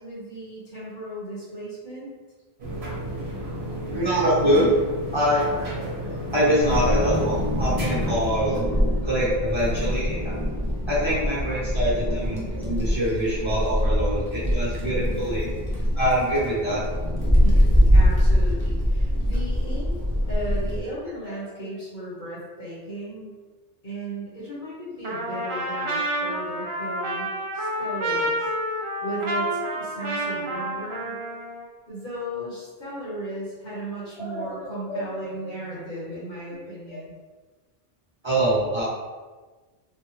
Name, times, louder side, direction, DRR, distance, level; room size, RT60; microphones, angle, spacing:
voice 1, 0.0-2.1 17.4-23.4 23.8-31.2 31.9-37.1, right 1 dB, 50° left, -8 dB, 1.2 m, -36 dB
sound 1, 2.6-8.3, right 1 dB, 75° right, 1.1 m, -32 dB
voice 2, 3.9-4.7 5.1-8.6 9.0-10.3 10.9-15.5 16.0-16.8 34.2-35.3 36.9-37.0 38.2-38.8, equal, 25° right, -10 dB, 1.1 m, -24 dB
Wind, 6.6-20.8, equal, 30° left, 0.5 m, -23 dB
Trumpet, 25.0-31.7, right 1 dB, 55° right, 0.3 m, -29 dB
3.3 x 2.2 x 3.1 m, 1.3 s
omnidirectional pair, 1.1 m